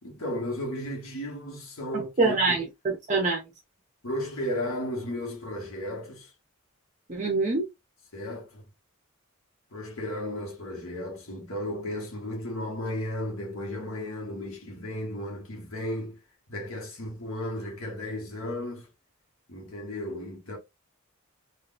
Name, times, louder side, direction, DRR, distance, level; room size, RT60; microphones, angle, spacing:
voice 1, 0.0-2.6 4.0-6.3 8.1-8.7 9.7-16.2 16.5-18.9 19.5-20.6, left 1 dB, 80° left, 1.2 m, -34 dB
voice 2, 2.2-2.6 3.1-3.4 7.1-7.7, right 3 dB, 35° right, 0.6 m, -24 dB
3.7 x 2.5 x 2.5 m
head